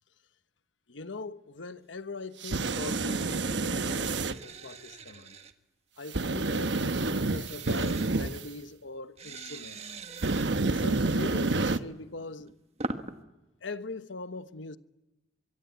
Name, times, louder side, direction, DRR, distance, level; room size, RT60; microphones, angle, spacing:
voice 1, 0.9-5.4 6.0-9.9 10.6-12.6 13.6-14.8, left 3 dB, 80° left, 1.1 m, -41 dB
sound 1, 2.4-4.3 6.1-8.4 10.2-11.8, right 3 dB, 70° right, 1.0 m, -28 dB
sound 2, 3.9-5.5 7.4-8.1 9.2-10.5 12.2-13.1, right 3 dB, 35° right, 1.4 m, -41 dB
25.5 x 23.5 x 8.4 m
head